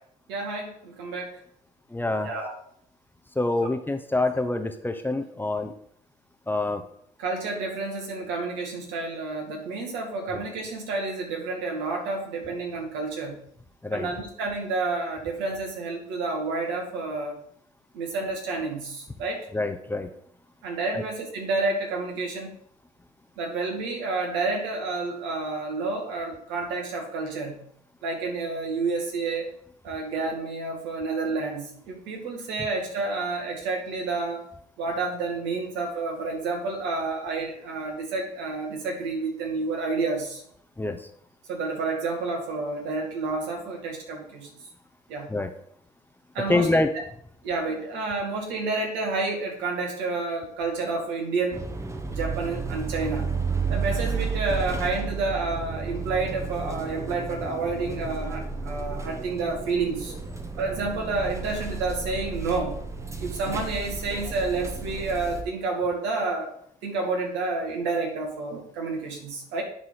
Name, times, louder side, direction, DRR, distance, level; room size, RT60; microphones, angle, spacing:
voice 1, 0.3-1.4 2.2-2.5 7.2-13.4 13.9-17.3 17.9-19.5 20.6-22.5 23.4-27.6 28.0-29.5 29.8-34.5 34.8-40.4 41.5-44.5 45.1-45.3 46.3-46.7 47.4-51.6 52.2-53.3 53.7-60.1 60.6-62.8 63.2-66.5 66.8-69.6, right 3 dB, 70° right, 1 dB, 2.3 m, -29 dB
voice 2, 1.9-2.3 3.4-5.7 6.5-6.8 13.8-14.1 19.5-20.1 20.9-21.0 40.8-41.0 45.3-45.5 46.5-46.9, left 2 dB, 10° left, 7 dB, 0.8 m, -26 dB
sound 1, 51.5-65.4, right 5 dB, 15° right, 1.1 m, -32 dB
11.0 x 4.1 x 4.1 m, 0.66 s
hypercardioid pair, 65°, 19 cm